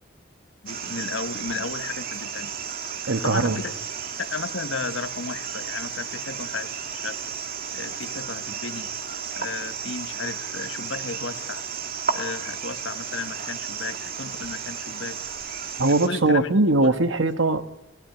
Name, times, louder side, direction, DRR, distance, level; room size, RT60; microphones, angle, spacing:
voice 1, 0.6-2.5 3.2-3.7 4.2-7.2 7.7-8.9 9.4-11.6 12.1-15.2 15.9-16.5 16.8-16.9, left 4 dB, 90° left, 1.4 m, -34 dB
sound 1, 0.7-16.1, right 7 dB, 50° right, 2.3 m, -33 dB
voice 2, 3.1-3.6 15.8-17.7, right 2 dB, 85° right, 1.4 m, -21 dB
30.0 x 17.0 x 9.2 m
head